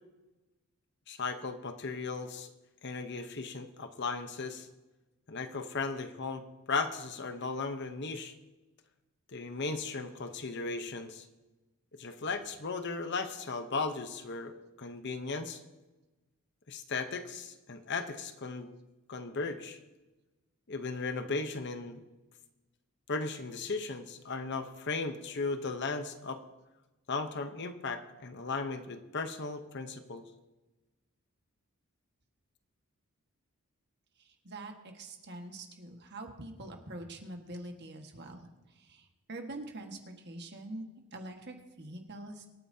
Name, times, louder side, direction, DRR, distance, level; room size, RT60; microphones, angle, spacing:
voice 1, 1.1-2.5 2.8-4.7 5.3-8.3 9.3-11.3 11.9-15.6 16.7-18.7 19.1-19.8 20.7-22.0 23.1-26.4 27.1-30.2, left 4 dB, 50° left, 8 dB, 0.9 m, -36 dB
voice 2, 34.2-42.5, right 1 dB, 50° right, 3 dB, 1.6 m, -45 dB
25.0 x 9.1 x 2.8 m, 1.1 s
head